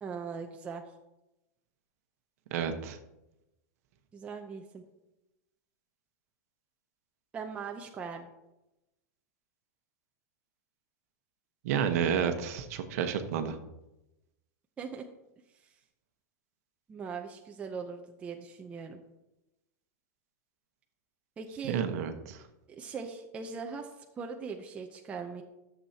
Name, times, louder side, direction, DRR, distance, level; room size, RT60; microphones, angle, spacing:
voice 1, 0.0-0.8 4.1-4.8 7.3-8.3 14.8-15.0 16.9-19.0 21.4-21.8 22.7-23.9 24.2-25.4, right 5 dB, 15° right, 3 dB, 0.5 m, -40 dB
voice 2, 2.5-3.0 11.6-13.6 21.7-22.4, right 8 dB, 55° right, 7 dB, 1.0 m, -30 dB
13.5 x 7.1 x 2.8 m, 0.94 s
supercardioid pair, 165°, 10 cm